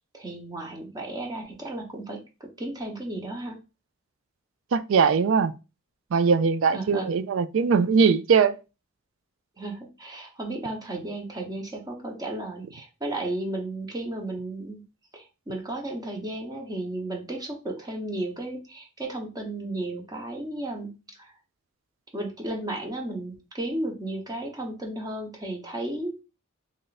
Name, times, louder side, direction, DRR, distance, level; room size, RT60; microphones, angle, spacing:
voice 1, 0.1-3.6 6.7-7.1 9.6-14.8 15.1-20.9 21.2-21.3 22.1-26.1, right 1 dB, 20° right, 0.8 m, -34 dB
voice 2, 4.7-5.5 6.1-8.5, right 5 dB, 65° right, 0.4 m, -21 dB
3.3 x 2.5 x 3.9 m
head